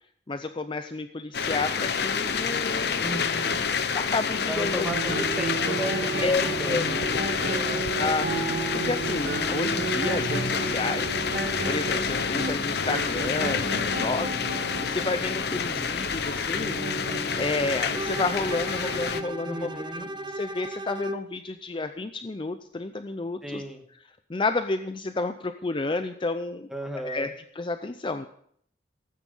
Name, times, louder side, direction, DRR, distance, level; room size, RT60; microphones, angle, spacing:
voice 1, 0.3-3.1 3.9-5.2 6.2-6.9 8.0-17.0 17.4-19.8 20.2-23.6 24.3-26.7 27.0-28.3, left 3 dB, 25° left, 9 dB, 0.5 m, -31 dB
sound 1, 1.3-19.2, left 6 dB, 60° left, 0.9 m, -28 dB
voice 2, 3.0-3.6 4.5-7.9 19.4-20.1 23.4-23.8 26.7-27.3, right 1 dB, 5° right, 2 dB, 1.7 m, -35 dB
sound 2, 4.8-20.3, right 3 dB, 70° right, 2.2 m, -34 dB
Bowed string instrument, 17.9-21.3, right 1 dB, 25° right, 0.6 m, -36 dB
16.5 x 9.2 x 5.5 m, 0.66 s
head